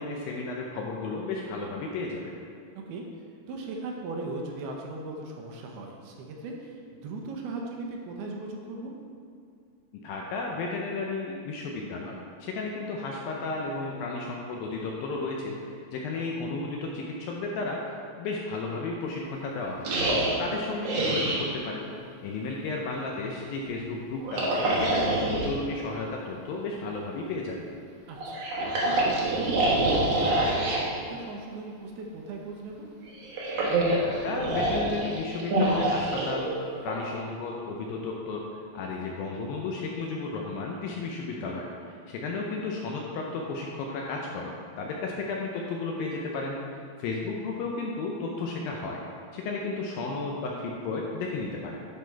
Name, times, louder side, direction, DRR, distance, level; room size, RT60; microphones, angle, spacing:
voice 1, 0.0-2.4 10.0-19.9 20.3-21.9 22.2-27.7 34.0-36.5 36.8-38.4 38.7-46.6 47.0-49.0 49.3-51.8, left 3 dB, 80° left, -1 dB, 2.2 m, -33 dB
voice 2, 3.5-6.8 7.0-8.9 20.5-20.6 28.1-28.4 28.9-32.9, right 3 dB, 80° right, 1 dB, 2.7 m, -38 dB
sound 1, 19.8-21.5 24.2-25.6 28.2-30.8 33.1-37.0, right 1 dB, 65° right, 1.7 m, -26 dB
11.0 x 4.2 x 4.5 m, 2.3 s
omnidirectional pair, 4.7 m